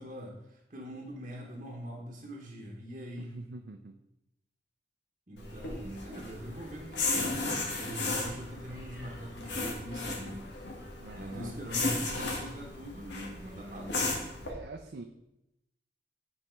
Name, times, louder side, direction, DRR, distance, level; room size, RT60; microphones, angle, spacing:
voice 1, 0.0-3.3 5.3-7.4 7.8-10.5 11.1-14.0, equal, 40° right, -2 dB, 1.0 m, -42 dB
voice 2, 3.2-3.9 8.2-8.3 11.0-11.7 12.0-12.3 14.4-15.0, right 3 dB, 75° right, 4 dB, 0.5 m, -45 dB
sound 1, 5.4-14.5, left 3 dB, 90° left, 1.3 m, -35 dB
8.0 x 4.2 x 4.4 m, 0.87 s
head